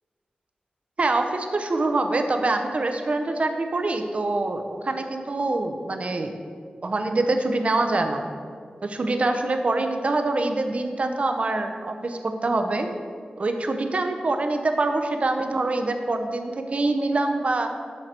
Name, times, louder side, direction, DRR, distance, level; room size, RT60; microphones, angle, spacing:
voice 1, 1.0-6.4 6.8-8.3 8.8-12.9 13.4-17.7, right 2 dB, 50° right, 6 dB, 0.7 m, -25 dB
7.4 x 6.5 x 4.3 m, 2.2 s
wide cardioid pair, 90°, 3 cm